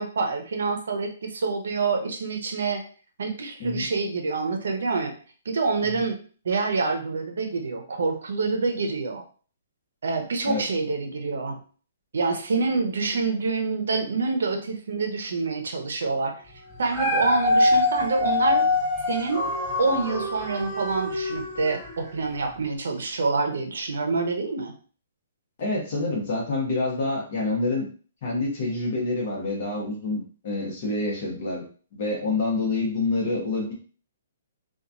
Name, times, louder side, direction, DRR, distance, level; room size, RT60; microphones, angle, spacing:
voice 1, 0.0-2.8 3.2-5.1 5.5-9.2 10.0-11.6 12.1-16.3 16.8-18.7 19.1-19.5 19.8-24.7, right 4 dB, 70° right, 4 dB, 0.6 m, -27 dB
Dog, 16.7-22.0 22.6-22.7, left 2 dB, ahead, 0.7 m, -24 dB
voice 2, 25.6-27.9 28.2-31.6 31.9-33.7, left 2 dB, 30° left, -3 dB, 1.0 m, -27 dB
2.9 x 2.3 x 2.5 m, 0.40 s
hypercardioid pair, 180°, 0 cm